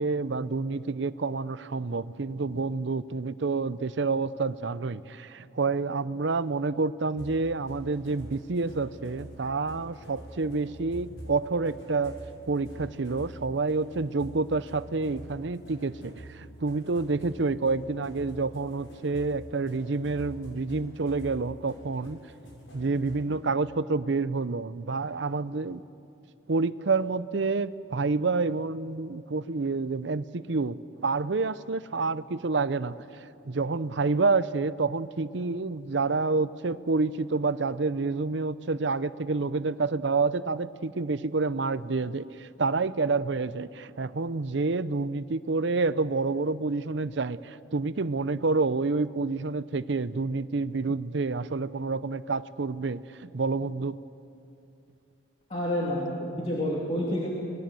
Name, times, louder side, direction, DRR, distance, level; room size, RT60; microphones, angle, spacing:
voice 1, 0.0-12.2 12.5-22.2 22.7-25.8 26.5-54.0, right 3 dB, 65° right, 15 dB, 0.6 m, -28 dB
sound 1, 7.2-23.4, equal, 90° left, 7.5 m, -46 dB
voice 2, 55.5-57.3, left 1 dB, 30° left, -5 dB, 2.8 m, -29 dB
26.0 x 20.0 x 7.7 m, 2.6 s
head